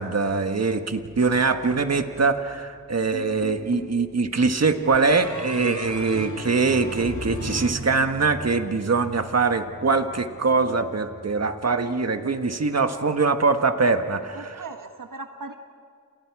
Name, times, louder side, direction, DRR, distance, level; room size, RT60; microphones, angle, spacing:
voice 1, 0.0-14.6, right 4 dB, 50° right, 7 dB, 1.5 m, -23 dB
sound 1, 0.8-12.5 13.2-13.5, right 2 dB, 25° right, 1.4 m, -42 dB
sound 2, 3.1-4.0 4.9-8.4, left 3 dB, 60° left, 2.6 m, -38 dB
voice 2, 14.3-15.5, right 3 dB, 70° right, 5 dB, 1.2 m, -38 dB
29.5 x 28.5 x 4.8 m, 2.1 s
wide cardioid pair, 75°, 34 cm